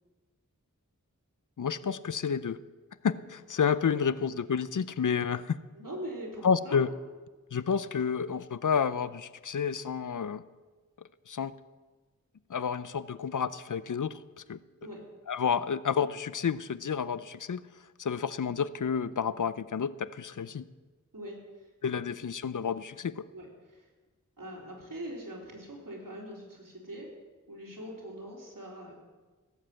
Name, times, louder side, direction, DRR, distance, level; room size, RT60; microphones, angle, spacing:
voice 1, 1.6-2.6 3.0-5.6 6.4-6.9 7.5-10.4 11.3-11.5 12.5-14.2 14.5-14.6 15.3-17.6 18.0-20.6 21.8-23.2, left 6 dB, 65° left, 16 dB, 0.6 m, -30 dB
voice 2, 5.7-6.8 14.8-15.0 21.1-21.7 23.3-23.9 24.4-27.1 27.5-28.9, right 1 dB, 85° right, -2 dB, 3.4 m, -42 dB
17.0 x 7.4 x 7.7 m, 1.3 s
wide cardioid pair, 45°, 33 cm